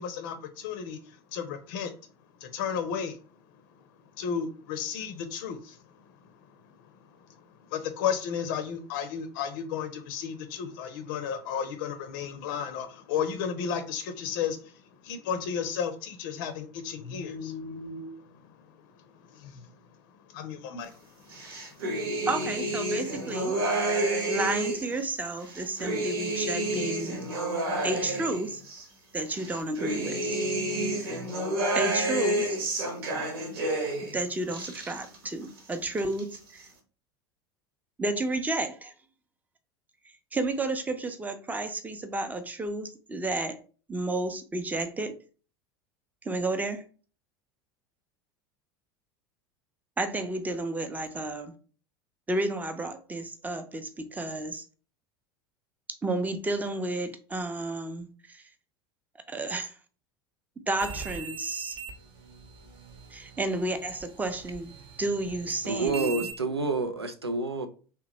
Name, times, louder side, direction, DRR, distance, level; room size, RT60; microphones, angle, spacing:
voice 1, 0.0-1.9 2.4-3.2 4.2-19.8 20.1-21.8, left 7 dB, 55° left, 0.5 m, -34 dB
sound 1, 21.3-24.9 25.4-28.8 29.3-34.2 34.4-35.3 35.6-36.4, right 1 dB, 65° right, 1.1 m, -30 dB
voice 2, 22.3-23.5 24.3-27.2 27.8-28.6 29.1-30.4 31.0-31.1 31.7-32.6 34.1-36.6 38.0-38.9 40.3-43.6 43.9-45.1 46.2-46.8 50.0-51.5 52.3-54.6 56.0-58.4 59.3-59.7 60.7-61.8 63.1-66.3, right 2 dB, 10° right, 0.6 m, -31 dB
sound 2, 60.8-66.3, right 6 dB, 40° right, 0.9 m, -42 dB
voice 3, 65.6-67.7, right 3 dB, 85° right, 0.5 m, -28 dB
3.3 x 2.9 x 2.9 m
figure-of-eight pair, 75°, 13 cm